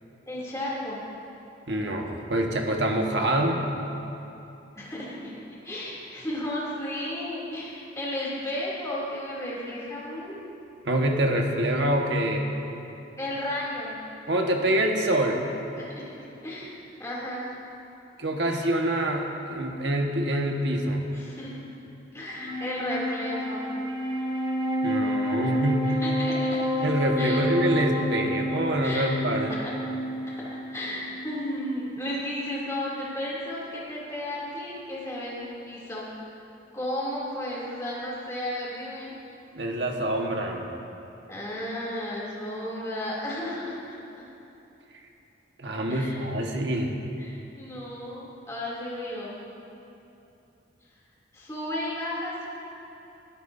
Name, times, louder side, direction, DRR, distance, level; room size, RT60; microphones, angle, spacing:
voice 1, 0.3-1.0 4.7-5.4 5.6-10.4 13.2-14.0 15.8-16.1 16.4-17.5 21.1-21.6 22.1-23.6 25.9-26.6 27.2-27.4 28.8-29.1 29.5-29.7 30.2-30.4 30.7-36.1 36.7-39.1 41.3-44.0 45.9-46.2 47.2-49.4 51.3-52.5, left 1 dB, 15° left, -6 dB, 2.9 m, -33 dB
voice 2, 1.7-3.6 10.8-12.5 14.3-15.4 18.2-21.0 24.8-25.8 26.8-29.6 39.5-40.7 45.6-46.9, right 1 dB, 70° right, 1 dB, 1.5 m, -25 dB
Wind instrument woodwind instrument, 22.3-31.8, equal, 25° right, 1.0 m, -29 dB
21.5 x 14.5 x 2.7 m, 2.9 s
head